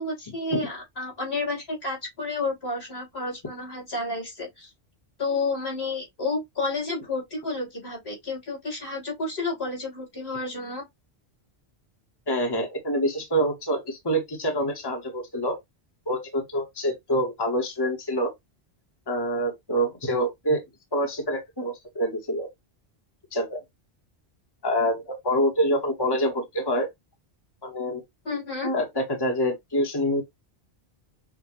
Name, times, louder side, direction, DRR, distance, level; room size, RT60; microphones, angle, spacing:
voice 1, 0.0-4.7 5.2-10.8 28.2-28.7, left 3 dB, 75° left, 3.5 m, -31 dB
voice 2, 12.3-15.6 16.1-18.3 19.1-20.6 20.9-22.5 23.3-23.6 24.6-26.9 27.6-28.0 28.6-30.2, equal, 25° left, 1.0 m, -26 dB
6.0 x 2.3 x 2.9 m
omnidirectional pair, 1.1 m